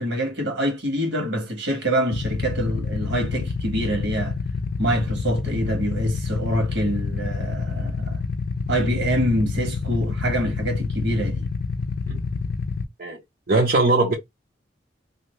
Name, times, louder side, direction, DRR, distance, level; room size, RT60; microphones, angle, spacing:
voice 1, 0.0-4.3 4.8-8.2 8.7-11.5, right 1 dB, 75° right, 1.4 m, -25 dB
Motorcycle / Idling, 2.1-12.8, left 4 dB, 55° left, 0.5 m, -28 dB
voice 2, 13.5-14.1, right 2 dB, 50° right, 0.7 m, -20 dB
2.8 x 2.6 x 3.1 m
head